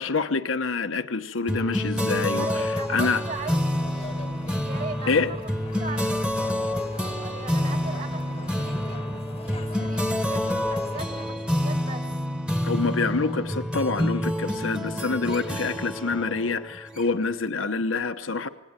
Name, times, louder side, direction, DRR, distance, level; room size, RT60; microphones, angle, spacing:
voice 1, 0.0-3.2 5.1-5.3 12.6-18.5, left 4 dB, 85° left, 8 dB, 1.0 m, -26 dB
sound 1, 1.5-17.4, left 1 dB, 5° right, 1.2 m, -28 dB
voice 2, 2.3-3.6 4.6-5.4 5.8-9.1 9.5-12.1, right 4 dB, 40° right, 5 dB, 2.8 m, -39 dB
sound 2, 3.3-11.2, left 3 dB, 30° left, 1.1 m, -43 dB
27.5 x 20.0 x 8.9 m, 1.1 s
head